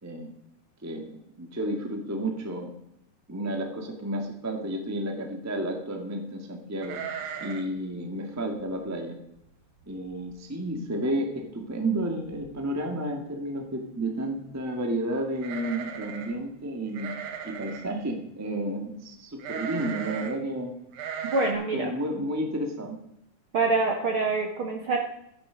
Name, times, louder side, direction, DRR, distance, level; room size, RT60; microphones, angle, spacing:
voice 1, 0.8-2.7 3.3-9.2 9.9-17.1 17.4-20.7 21.7-23.0, right 1 dB, 15° right, 3 dB, 0.6 m, -31 dB
sound 1, 6.8-7.8 8.0-8.1 8.6-8.9 9.4-9.5 9.8-10.3 10.7-10.8 11.9-12.0 12.3-12.7 15.4-16.4 16.9-17.9 19.4-20.4 20.9-21.5, right 7 dB, 75° right, 2.9 m, -37 dB
voice 2, 21.2-21.9 23.5-25.0, right 3 dB, 55° right, 2 dB, 1.5 m, -25 dB
13.5 x 10.5 x 5.2 m, 0.77 s
omnidirectional pair, 4.3 m